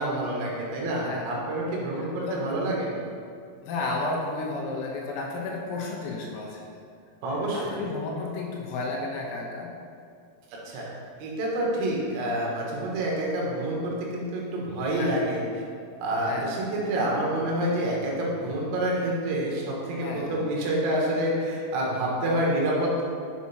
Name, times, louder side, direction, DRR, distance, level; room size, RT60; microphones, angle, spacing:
voice 1, 0.0-2.9 7.2-7.7 10.7-10.9 11.2-15.4 16.0-23.0, right 1 dB, 80° right, -3 dB, 4.2 m, -27 dB
voice 2, 2.0-2.4 3.6-6.6 7.5-9.7 14.9-15.3 16.3-16.6 19.9-20.4, left 3 dB, 85° left, -1 dB, 4.0 m, -33 dB
7.9 x 7.4 x 4.3 m, 2.4 s
omnidirectional pair, 5.9 m